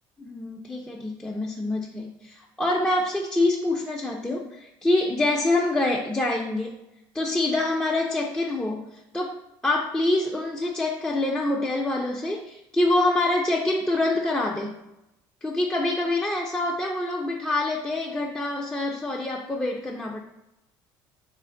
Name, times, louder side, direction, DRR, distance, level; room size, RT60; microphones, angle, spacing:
voice 1, 0.2-6.8 7.1-9.3 9.6-14.8 15.4-20.2, left 2 dB, 10° left, -2 dB, 0.3 m, -26 dB
3.1 x 2.5 x 3.5 m, 0.89 s
supercardioid pair, 100°, 11 cm